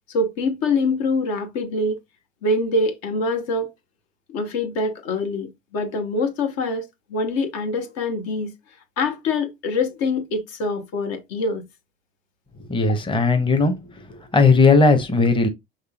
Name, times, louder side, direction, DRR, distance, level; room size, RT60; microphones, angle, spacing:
voice 1, 0.1-2.0 2.4-3.7 4.3-8.5 9.0-11.6, left 2 dB, 60° left, 1.2 m, -24 dB
voice 2, 12.7-13.7 14.1-15.5, left 3 dB, 15° left, 1.0 m, -17 dB
5.4 x 3.4 x 2.4 m
hypercardioid pair, 70°, 29 cm